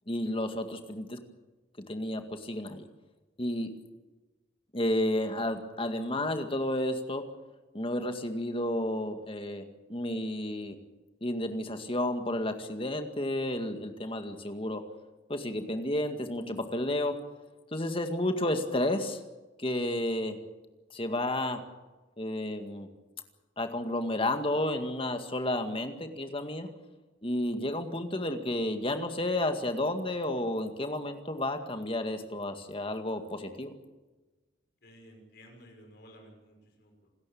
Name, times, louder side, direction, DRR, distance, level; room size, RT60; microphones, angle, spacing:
voice 1, 0.1-1.2 1.9-2.9 3.4-3.7 4.7-7.2 7.7-9.6 9.9-10.8 11.2-14.8 15.3-17.1 17.7-19.2 19.6-20.4 20.9-21.6 22.2-22.9 23.6-26.7 27.2-33.7, left 1 dB, 30° left, 7 dB, 2.0 m, -31 dB
voice 2, 34.8-37.1, equal, 55° left, 1 dB, 5.9 m, -54 dB
27.5 x 13.5 x 8.7 m, 1.2 s
head